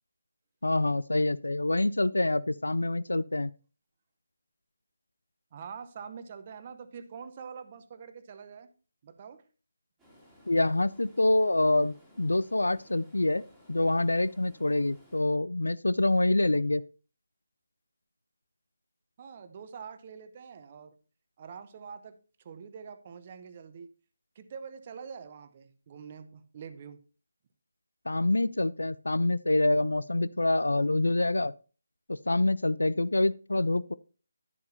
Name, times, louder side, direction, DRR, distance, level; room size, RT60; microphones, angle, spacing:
voice 1, 0.6-3.5 10.5-13.4 13.7-16.8 28.1-31.5 32.1-33.9, left 2 dB, 70° left, 0.4 m, -26 dB
voice 2, 5.5-8.7 9.0-9.4 19.2-21.0 21.4-22.2 22.4-23.9 24.4-27.0, right 6 dB, 30° right, 0.8 m, -45 dB
Stream, 10.0-15.3, equal, ahead, 2.7 m, -59 dB
11.0 x 10.5 x 2.7 m
figure-of-eight pair, 150°, 0 cm